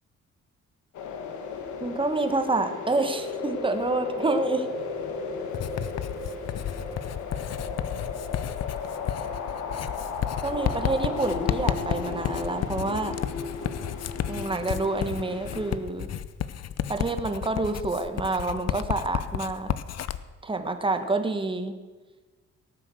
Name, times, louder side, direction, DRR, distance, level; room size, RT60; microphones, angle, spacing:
sound 1, 0.9-15.8, left 5 dB, 75° left, 1.7 m, -35 dB
voice 1, 1.8-4.7 10.4-13.1 14.3-16.1 16.9-19.7 20.4-21.7, right 3 dB, 15° right, 7 dB, 1.3 m, -28 dB
Writing, 5.5-20.2, left 10 dB, 55° left, 0.7 m, -32 dB
18.0 x 7.6 x 6.3 m, 1.3 s
cardioid pair, 90°, 30 cm